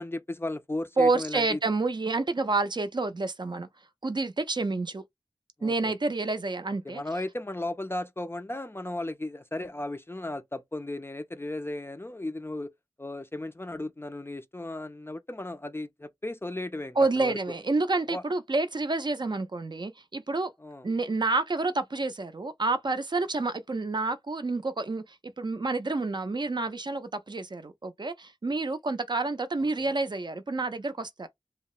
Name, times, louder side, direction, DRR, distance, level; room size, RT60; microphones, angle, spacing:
voice 1, 0.0-1.6 5.6-5.9 6.8-12.7 13.0-17.4 18.1-18.2 20.6-20.9 29.8-29.9, left 1 dB, 25° left, 0.3 m, -35 dB
voice 2, 1.0-3.7 4.0-5.0 5.6-7.0 17.0-20.5 20.8-31.3, right 3 dB, 45° right, 0.4 m, -29 dB
2.8 x 2.0 x 2.3 m
wide cardioid pair, 60°, 10 cm